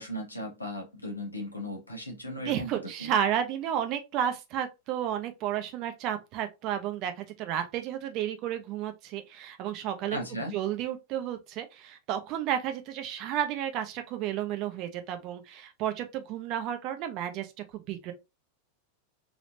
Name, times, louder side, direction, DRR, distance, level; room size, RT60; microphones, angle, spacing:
voice 1, 0.0-3.1 10.1-10.6, left 1 dB, 80° left, 1.1 m, -37 dB
voice 2, 2.3-10.2 10.5-18.1, right 10 dB, 40° right, 0.7 m, -32 dB
3.3 x 3.0 x 2.6 m
figure-of-eight pair, 90°, 0 cm